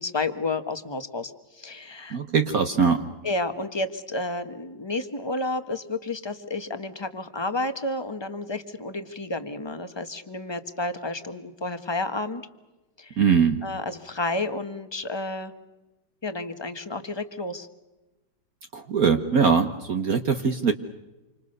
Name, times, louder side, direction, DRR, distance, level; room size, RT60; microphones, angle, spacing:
voice 1, 0.0-2.2 3.2-12.4 13.0-13.2 13.6-15.5 16.2-17.7, left 2 dB, 15° left, 8 dB, 1.3 m, -31 dB
voice 2, 2.1-3.0 13.2-13.6 18.7-20.7, right 6 dB, 55° right, 6 dB, 1.5 m, -21 dB
28.0 x 25.5 x 6.7 m, 1.1 s
omnidirectional pair, 2.0 m